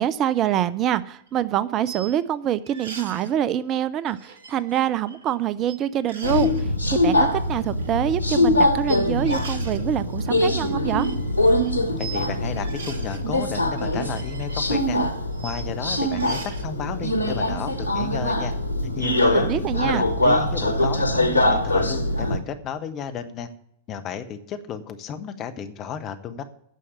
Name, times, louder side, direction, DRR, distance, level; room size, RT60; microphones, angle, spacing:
voice 1, 0.0-11.1 19.3-20.1, right 10 dB, 35° right, 16 dB, 0.4 m, -25 dB
sound 1, 1.2-1.3 1.8-2.1 2.6-3.3 4.1-5.4 5.6-5.8 6.1-6.6 7.3-7.9 8.9-9.8 10.1-12.3 12.6-13.2 13.6-15.7 16.1-16.6, right 5 dB, 65° right, 1.2 m, -41 dB
Subway metro underground, 6.2-22.4, left 1 dB, 90° right, 1.1 m, -23 dB
voice 2, 11.8-15.0 15.4-18.5 18.8-23.5 23.9-26.4, left 7 dB, 35° left, 10 dB, 1.0 m, -33 dB
9.2 x 6.4 x 8.5 m, 0.73 s
figure-of-eight pair, 90°, 0 cm